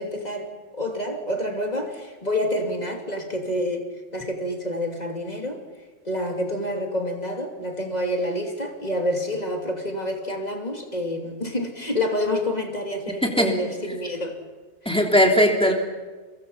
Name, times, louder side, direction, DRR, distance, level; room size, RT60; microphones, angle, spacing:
voice 1, 0.0-3.9 4.1-5.6 6.0-14.4, left 1 dB, 40° left, 2 dB, 3.0 m, -28 dB
voice 2, 13.2-13.5 14.8-15.7, equal, 5° left, 0 dB, 3.2 m, -18 dB
30.0 x 23.5 x 5.7 m, 1.3 s
omnidirectional pair, 1.1 m